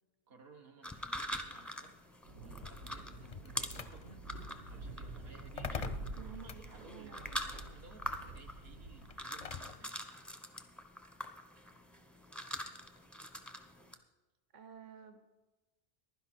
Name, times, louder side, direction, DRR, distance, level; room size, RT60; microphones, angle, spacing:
voice 1, 0.3-10.0, right 4 dB, 65° right, 5 dB, 1.4 m, -58 dB
sound 1, 0.8-13.9, equal, ahead, 0.6 m, -45 dB
sound 2, 2.2-9.1, right 2 dB, 90° right, 1.3 m, -48 dB
sound 3, 2.5-9.9, left 6 dB, 45° left, 0.5 m, -47 dB
voice 2, 6.2-7.2 14.5-15.2, right 7 dB, 50° right, 7 dB, 0.8 m, -52 dB
15.5 x 11.5 x 4.2 m, 1.1 s
omnidirectional pair, 1.1 m